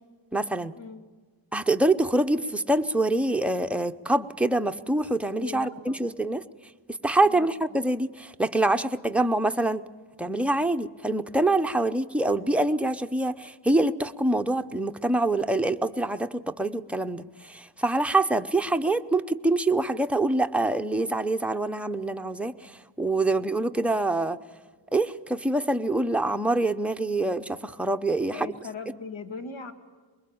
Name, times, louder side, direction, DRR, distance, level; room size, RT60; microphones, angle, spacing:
voice 1, 0.3-0.7 1.5-6.4 6.9-9.8 10.2-24.4 24.9-28.5, right 2 dB, 5° right, 6 dB, 0.7 m, -25 dB
voice 2, 5.4-6.2 7.2-7.5 11.7-11.9 28.3-29.7, left 5 dB, 75° left, 7 dB, 2.0 m, -39 dB
23.5 x 21.5 x 8.6 m, 1.4 s
wide cardioid pair, 110°, 46 cm